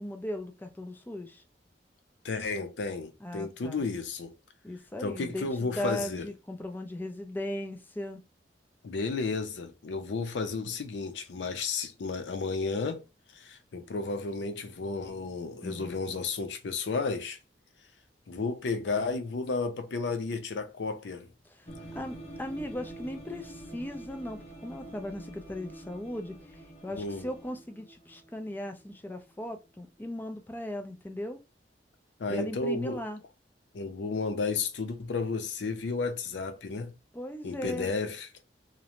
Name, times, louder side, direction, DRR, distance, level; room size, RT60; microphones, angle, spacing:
voice 1, 0.0-1.4 3.2-3.9 4.6-8.2 15.6-15.8 21.5-21.7 21.9-31.4 32.3-33.2 37.1-37.9, left 1 dB, 10° left, 0.4 m, -38 dB
voice 2, 2.2-4.3 5.0-6.3 8.8-13.0 13.3-17.4 18.3-21.3 26.9-27.3 32.2-33.0 33.7-36.9 37.4-38.3, left 4 dB, 85° left, 0.5 m, -32 dB
sound 1, 21.7-29.3, right 1 dB, 35° left, 1.0 m, -46 dB
2.5 x 2.0 x 2.9 m
head